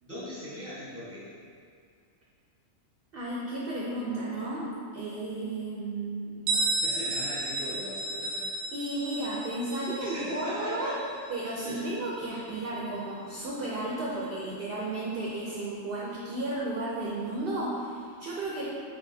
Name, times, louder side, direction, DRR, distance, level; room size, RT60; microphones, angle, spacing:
voice 1, 0.0-1.3 6.8-8.5 10.0-11.0 11.3-11.9 12.6-13.0 18.6-18.7, left 1 dB, 10° right, -8 dB, 0.9 m, -39 dB
voice 2, 3.1-6.5 8.7-10.9 11.3-18.6, right 2 dB, 55° right, -5 dB, 0.7 m, -33 dB
Bell, 6.5-12.0, right 2 dB, 80° right, 1.0 m, -33 dB
4.3 x 4.0 x 2.7 m, 2.3 s
omnidirectional pair, 1.4 m